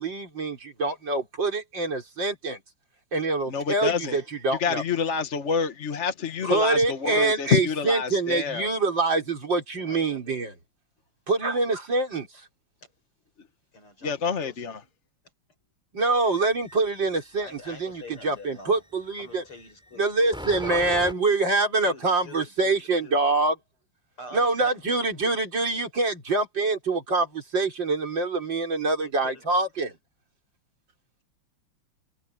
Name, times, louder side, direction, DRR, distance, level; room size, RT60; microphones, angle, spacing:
voice 1, 0.0-2.6 3.1-4.8 6.4-10.5 11.3-12.5 15.9-19.4 20.0-23.6 24.3-29.9, right 3 dB, 55° right, 5.2 m, -25 dB
voice 2, 3.5-4.2 4.6-8.7 14.0-14.8, left 6 dB, 40° left, 1.2 m, -27 dB
voice 3, 9.8-10.5 12.8-12.9 13.7-14.9 17.4-18.8 19.2-20.8 21.8-23.3 24.2-24.7 29.0-29.5, left 2 dB, 80° left, 8.7 m, -45 dB
sound 1, 16.1-18.5 19.3-21.1, equal, ahead, 5.6 m, -40 dB
omnidirectional pair, 2.4 m